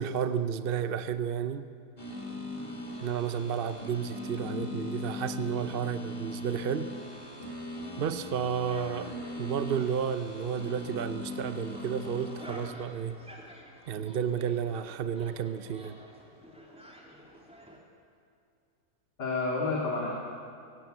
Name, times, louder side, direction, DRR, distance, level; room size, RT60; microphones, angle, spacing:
voice 1, 0.0-1.7 3.0-6.9 8.0-9.1 9.4-13.2 13.9-16.0, right 8 dB, 50° right, 11 dB, 0.7 m, -32 dB
sound 1, 2.0-12.7, left 2 dB, 20° left, 2.3 m, -40 dB
sound 2, 8.2-17.8, equal, 5° right, 3.2 m, -50 dB
voice 2, 19.2-20.1, left 3 dB, 80° left, -3 dB, 3.3 m, -30 dB
23.0 x 18.0 x 8.0 m, 2.6 s
omnidirectional pair, 1.8 m